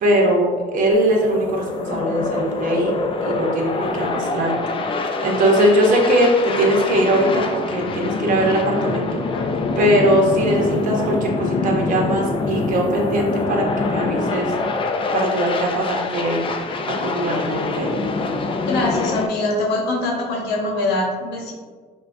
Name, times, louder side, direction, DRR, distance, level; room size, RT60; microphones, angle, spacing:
voice 1, 0.0-2.9 3.2-4.5 4.8-9.2 9.8-14.5 15.1-16.4 16.9-17.9, right 1 dB, 50° right, 0 dB, 0.8 m, -20 dB
sound 1, 0.9-19.3, left 3 dB, 30° left, 0.4 m, -25 dB
voice 2, 18.7-21.5, left 2 dB, 85° left, -1 dB, 0.8 m, -23 dB
5.5 x 2.2 x 2.6 m, 1.5 s
cardioid pair, 110°, 17 cm